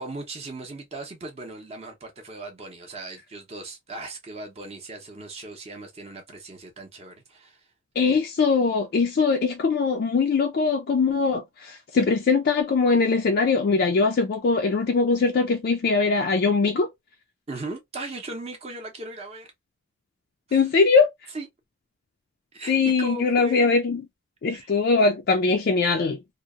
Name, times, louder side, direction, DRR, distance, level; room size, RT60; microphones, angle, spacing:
voice 1, 0.0-7.6 17.5-19.5 20.5-20.7 21.3-21.5 22.5-23.6 24.5-24.7, right 2 dB, 30° right, 0.6 m, -38 dB
voice 2, 8.0-16.9 20.5-21.1 22.7-24.0 24.4-26.2, left 4 dB, 50° left, 0.3 m, -21 dB
2.7 x 2.0 x 2.3 m
head